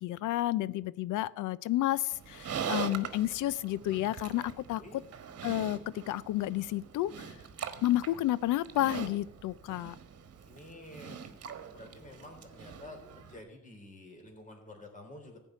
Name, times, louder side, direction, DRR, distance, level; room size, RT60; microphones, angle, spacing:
voice 1, 0.0-5.0 5.4-5.8 6.1-7.3 7.8-9.9, left 14 dB, 85° left, 20 dB, 0.6 m, -31 dB
Livestock farm animals working animals, 2.1-13.4, right 7 dB, 55° right, 1.4 m, -42 dB
voice 2, 10.5-11.2 11.7-15.4, left 1 dB, 25° left, 2 dB, 3.6 m, -49 dB
15.0 x 5.5 x 9.2 m, 0.87 s
cardioid pair, 90°, 30 cm